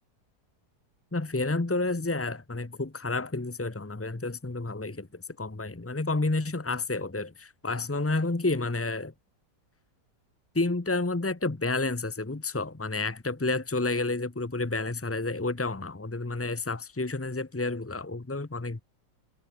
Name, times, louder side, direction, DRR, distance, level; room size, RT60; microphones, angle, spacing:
voice 1, 1.1-9.1 10.5-18.8, left 2 dB, 20° left, 0.3 m, -30 dB
omnidirectional pair, 1.8 m